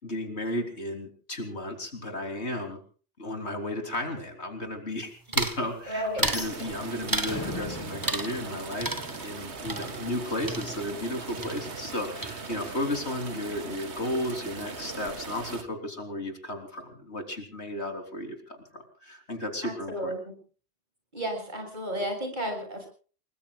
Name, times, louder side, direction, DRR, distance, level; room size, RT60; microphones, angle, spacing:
voice 1, 0.0-2.8 3.2-20.1, left 1 dB, 85° left, 5 dB, 3.8 m, -34 dB
sound 1, 5.3-5.6 6.2-6.5 7.1-7.5 8.0-8.5 8.8-11.1 11.4-12.0 12.2-12.8, right 2 dB, 20° right, 1.2 m, -32 dB
voice 2, 5.9-6.3 19.6-20.3 21.1-22.9, equal, 45° right, 3 dB, 6.6 m, -32 dB
sound 2, 6.2-9.3, left 2 dB, 25° left, 1.7 m, -40 dB
sound 3, 6.2-15.6, right 4 dB, 90° right, 1.8 m, -40 dB
29.5 x 20.5 x 2.4 m, 0.40 s
omnidirectional pair, 1.1 m